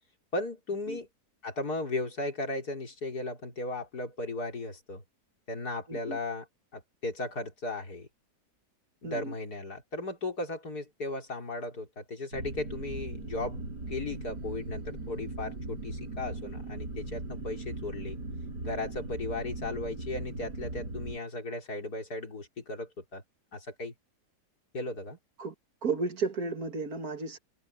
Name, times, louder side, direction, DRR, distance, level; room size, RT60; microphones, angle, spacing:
voice 1, 0.3-1.1 1.4-5.0 5.5-6.5 6.7-8.1 9.0-18.2 18.6-23.2 23.5-23.9 24.7-25.2, left 2 dB, 70° left, 4.6 m, -36 dB
voice 2, 5.9-6.2 9.0-9.3 25.4-25.5 25.8-27.4, right 4 dB, 65° right, 2.3 m, -33 dB
sound 1, 12.3-21.2, right 2 dB, 85° right, 7.0 m, -39 dB
omnidirectional pair, 1.8 m